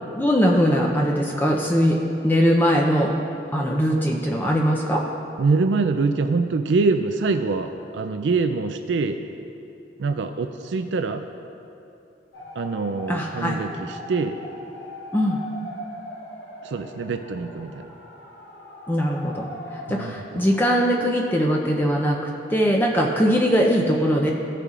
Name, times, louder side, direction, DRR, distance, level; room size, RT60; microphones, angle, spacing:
voice 1, 0.2-3.2 3.5-5.1 13.1-13.6 15.1-15.4 18.9-22.2 22.5-24.3, equal, 10° left, -1 dB, 0.6 m, -21 dB
voice 2, 5.4-9.2 10.0-11.2 12.5-14.4 16.6-17.9 19.9-20.4, right 4 dB, 85° right, 7 dB, 0.4 m, -24 dB
sound 1, 12.3-20.0, left 1 dB, 70° left, 1.1 m, -40 dB
16.0 x 6.7 x 2.5 m, 2.8 s
head